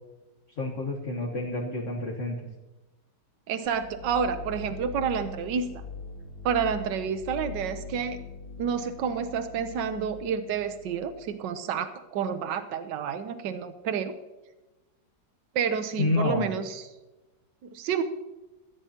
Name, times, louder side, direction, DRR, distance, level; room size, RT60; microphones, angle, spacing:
voice 1, 0.6-2.4 16.0-16.5, left 2 dB, 45° left, -1 dB, 1.6 m, -28 dB
voice 2, 3.5-5.7 6.4-8.2 8.6-14.1 15.5-16.8 17.7-18.0, right 7 dB, 85° right, 9 dB, 1.5 m, -29 dB
sound 1, 3.7-11.4, left 4 dB, 70° left, 1.7 m, -42 dB
16.5 x 14.0 x 2.9 m, 1.1 s
omnidirectional pair, 1.9 m